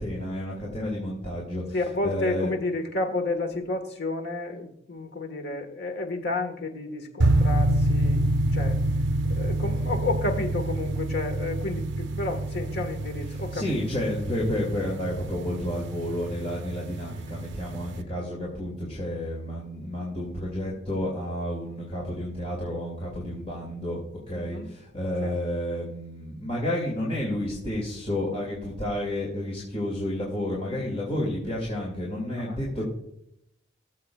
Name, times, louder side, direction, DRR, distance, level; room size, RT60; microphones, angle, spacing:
voice 1, 0.0-1.6 2.0-2.5 13.5-24.0 24.3-32.9, left 1 dB, 35° left, -4 dB, 2.4 m, -31 dB
voice 2, 1.7-8.8 9.2-13.8 24.3-24.7 25.2-25.4 32.3-32.6, left 2 dB, 60° left, 5 dB, 1.5 m, -31 dB
sound 1, 7.2-18.0, right 1 dB, 65° right, 0.6 m, -27 dB
19.5 x 7.3 x 2.4 m, 0.78 s
head